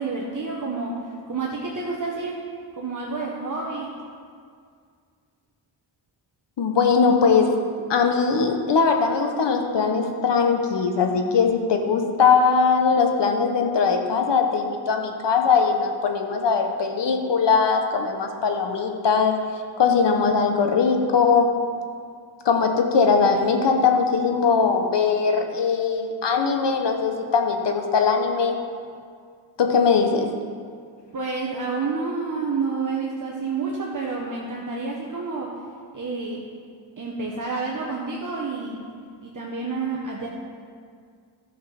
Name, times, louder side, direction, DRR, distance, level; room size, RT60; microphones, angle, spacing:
voice 1, 0.0-2.4 2.8-3.9 31.1-35.6 35.9-36.5 37.0-38.8 39.2-40.3, right 4 dB, 40° right, -3 dB, 1.2 m, -29 dB
voice 2, 6.6-7.5 7.9-19.4 19.8-21.5 22.4-28.6 29.6-30.3, left 5 dB, 65° left, 4 dB, 1.1 m, -20 dB
12.5 x 6.5 x 5.8 m, 2.1 s
wide cardioid pair, 125°, 46 cm